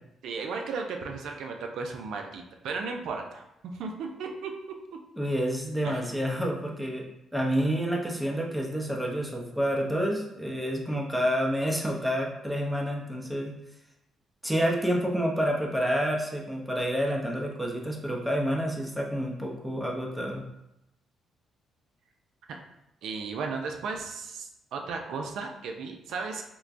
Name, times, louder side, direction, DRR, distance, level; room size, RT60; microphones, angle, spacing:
voice 1, 0.2-3.4 3.8-4.5 4.9-5.0 5.8-6.1 22.5-22.6 23.0-26.4, right 4 dB, 75° right, 3 dB, 0.5 m, -35 dB
voice 2, 5.2-7.1 7.3-13.5 14.4-20.4, equal, 5° right, -1 dB, 0.7 m, -28 dB
4.5 x 2.2 x 2.5 m, 0.85 s
cardioid pair, 90°, 0 cm